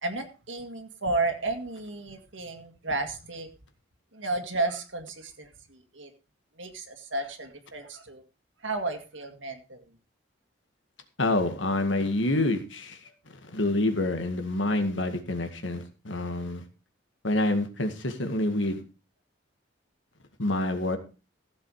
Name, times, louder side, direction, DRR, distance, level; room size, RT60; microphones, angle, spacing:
voice 1, 0.0-3.5 4.1-6.1 6.6-8.2 8.6-9.9 13.1-13.2, right 2 dB, 75° right, 6 dB, 2.0 m, -33 dB
voice 2, 11.2-13.1 13.4-16.6 17.2-18.8 20.4-21.0, left 2 dB, 75° left, 8 dB, 2.0 m, -27 dB
15.5 x 7.5 x 4.8 m, 0.33 s
head